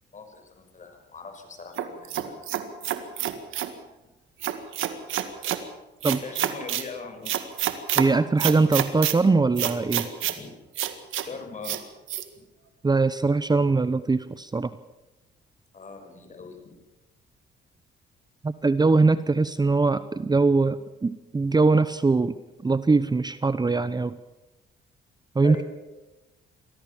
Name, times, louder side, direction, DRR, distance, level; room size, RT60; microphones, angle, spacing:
voice 1, 0.1-2.4 6.0-7.5 10.0-10.5 11.2-11.8 15.7-16.6 25.4-25.6, left 4 dB, 40° left, 5 dB, 5.8 m, -40 dB
sound 1, 1.8-3.7 4.4-5.6 6.0-6.9 7.3-8.1 8.4-9.2 9.6-10.4 10.8-11.3 11.6-11.8 12.1-12.2, right 12 dB, 80° right, 1.9 m, -28 dB
voice 2, 8.0-10.1 12.8-14.7 18.4-22.4 22.6-24.2 25.3-25.6, right 3 dB, 20° right, 14 dB, 0.8 m, -22 dB
24.0 x 16.5 x 7.1 m, 1.1 s
cardioid pair, 90°, 20 cm